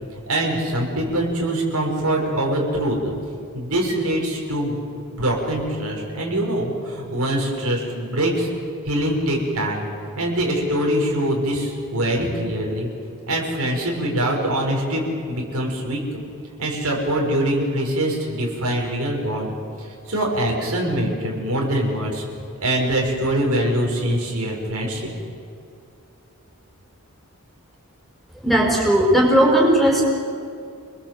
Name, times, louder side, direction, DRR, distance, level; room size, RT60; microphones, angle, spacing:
voice 1, 0.2-3.1 3.5-4.8 5.1-8.5 8.8-9.9 10.1-12.9 13.3-16.0 16.6-22.2 22.6-25.0, right 1 dB, 80° right, -1 dB, 6.4 m, -23 dB
voice 2, 28.4-30.0, right 1 dB, ahead, -1 dB, 5.3 m, -16 dB
29.0 x 21.5 x 8.0 m, 2.5 s
head